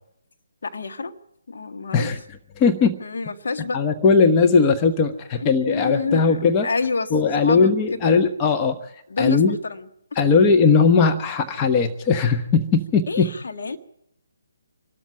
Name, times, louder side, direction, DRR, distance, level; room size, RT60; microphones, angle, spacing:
voice 1, 0.6-1.2 1.5-2.1 3.0-3.8 5.3-8.2 9.1-9.9 13.1-13.8, left 4 dB, 60° left, 4 dB, 1.8 m, -28 dB
voice 2, 2.6-3.0 3.7-6.7 7.1-8.8 9.2-9.6 10.2-13.3, left 5 dB, 20° left, 5 dB, 1.0 m, -18 dB
25.5 x 13.0 x 8.5 m, 0.81 s
figure-of-eight pair, 145°, 0 cm